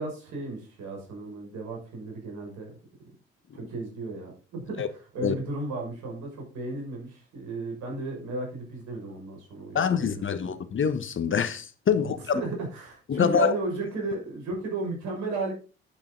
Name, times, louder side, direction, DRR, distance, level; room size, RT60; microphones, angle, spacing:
voice 1, 0.0-2.8 3.5-10.5 12.0-15.5, right 3 dB, 65° right, 6.2 m, -34 dB
voice 2, 9.7-12.4 13.1-13.5, left 7 dB, 40° left, 1.4 m, -25 dB
10.5 x 8.8 x 4.0 m
hypercardioid pair, 50°, 30 cm